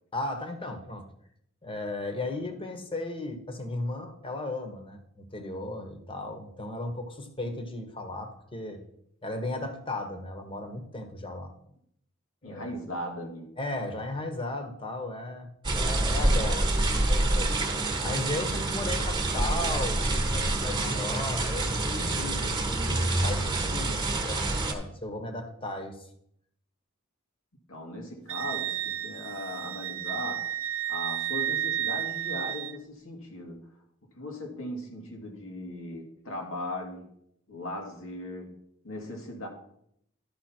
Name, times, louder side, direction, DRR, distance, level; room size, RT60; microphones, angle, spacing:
voice 1, 0.1-1.1 1.6-8.8 9.2-11.5 12.4-12.7 13.6-17.5 18.0-26.0, left 2 dB, 25° left, 6 dB, 1.2 m, -35 dB
voice 2, 12.4-13.5 18.5-18.8 27.7-30.5 30.9-33.7 34.1-37.1 37.5-38.6 38.8-39.5, left 1 dB, 85° left, 1 dB, 2.2 m, -38 dB
sound 1, 15.6-24.7, right 2 dB, 25° right, 1.2 m, -27 dB
Wind instrument woodwind instrument, 28.3-32.8, right 11 dB, 70° right, 0.5 m, -32 dB
12.0 x 5.6 x 4.4 m, 0.72 s
head